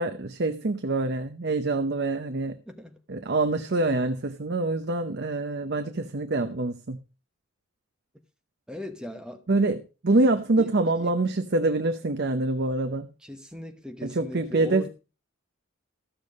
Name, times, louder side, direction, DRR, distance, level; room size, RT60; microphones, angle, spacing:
voice 1, 0.0-2.6 3.1-7.0 9.5-9.8 10.0-13.1 14.0-14.9, right 2 dB, 50° right, 0.8 m, -25 dB
voice 2, 2.6-3.0 8.7-9.5 10.6-10.7 11.0-11.2 13.2-14.9, equal, 5° right, 1.0 m, -39 dB
14.0 x 6.9 x 5.2 m
head